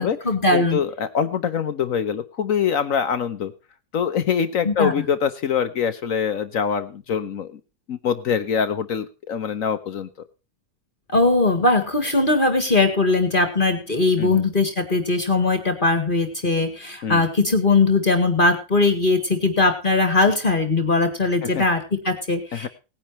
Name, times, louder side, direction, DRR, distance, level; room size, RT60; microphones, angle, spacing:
voice 1, 0.0-0.8 4.6-4.9 11.1-22.7, left 3 dB, 35° left, 8 dB, 2.0 m, -20 dB
voice 2, 0.5-3.5 3.9-7.6 7.9-10.1 14.2-14.4 17.0-17.2 21.4-21.6 22.5-22.7, left 7 dB, 65° left, 10 dB, 1.3 m, -24 dB
19.0 x 10.5 x 3.0 m, 0.31 s
omnidirectional pair, 1.5 m